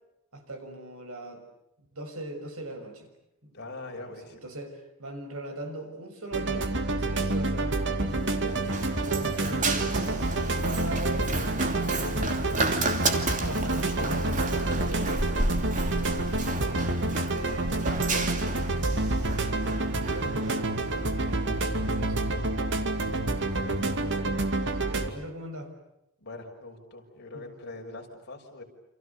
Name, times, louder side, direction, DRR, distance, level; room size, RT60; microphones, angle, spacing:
voice 1, 0.3-1.4 1.9-3.1 3.4-3.6 4.0-8.6 9.0-13.0 13.5-15.6 16.3-19.4 19.8-22.6 22.9-24.4 24.8-25.7 27.3-27.5, right 1 dB, 70° right, 6 dB, 6.2 m, -41 dB
voice 2, 3.5-4.4 16.6-16.8 26.2-28.6, left 2 dB, 50° left, 2 dB, 6.2 m, -42 dB
sound 1, 6.3-25.1, right 2 dB, 55° right, 2.4 m, -28 dB
Run, 8.1-24.1, right 2 dB, 35° right, 2.7 m, -33 dB
29.5 x 28.5 x 6.9 m, 0.86 s
head